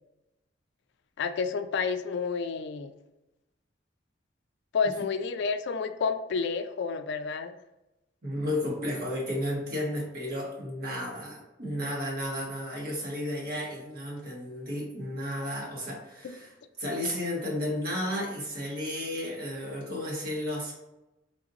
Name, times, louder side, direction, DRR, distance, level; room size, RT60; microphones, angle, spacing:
voice 1, 1.2-2.9 4.7-7.6 16.2-16.4, left 5 dB, 65° left, 9 dB, 0.3 m, -30 dB
voice 2, 8.2-16.5 16.8-20.7, left 1 dB, 55° right, -3 dB, 1.4 m, -33 dB
3.5 x 2.6 x 3.8 m, 0.97 s
head